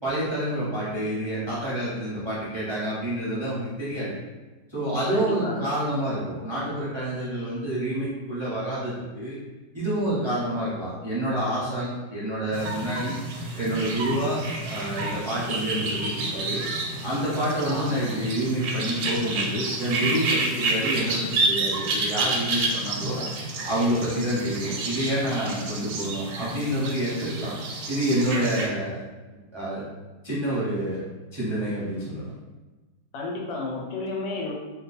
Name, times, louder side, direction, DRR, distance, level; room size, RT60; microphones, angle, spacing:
voice 1, 0.0-4.1 4.7-9.4 9.7-13.2 13.6-16.6 17.0-23.2 23.6-27.5 27.9-29.0 29.5-29.9 30.2-31.0 31.3-32.3, right 1 dB, 25° right, -9 dB, 0.6 m, -28 dB
voice 2, 5.1-5.6 17.7-17.9 22.8-23.3 33.1-34.5, left 3 dB, 85° left, -1 dB, 1.3 m, -32 dB
sound 1, 12.5-28.7, right 2 dB, 85° right, 1.3 m, -29 dB
2.9 x 2.2 x 4.1 m, 1.2 s
omnidirectional pair, 1.9 m